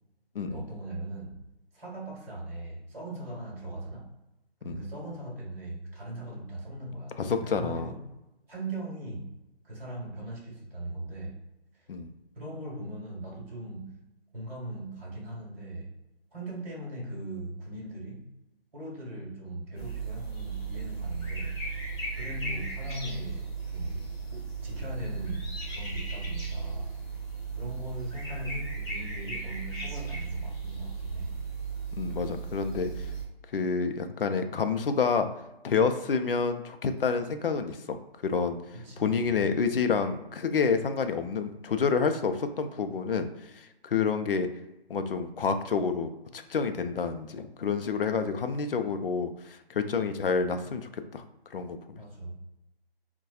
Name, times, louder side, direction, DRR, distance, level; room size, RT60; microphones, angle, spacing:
voice 1, 0.5-1.4 1.7-4.0 4.6-8.0 8.5-9.3 9.6-11.4 11.8-11.9 12.3-13.9 14.3-15.9 16.3-18.3 18.7-21.9 22.2-26.9 27.5-31.4 38.7-39.1 52.0-52.4, right 1 dB, 45° right, -5 dB, 1.2 m, -39 dB
voice 2, 7.2-7.9 11.9-12.1 32.0-32.9 33.5-35.3 35.6-38.0 38.2-38.6 39.0-43.3 43.5-44.5 44.9-51.2 51.5-51.8, left 5 dB, 60° left, 8 dB, 0.5 m, -28 dB
sound 1, 19.8-33.2, right 4 dB, 25° left, 1.2 m, -36 dB
4.0 x 2.2 x 2.4 m, 0.94 s
figure-of-eight pair, 155°, 31 cm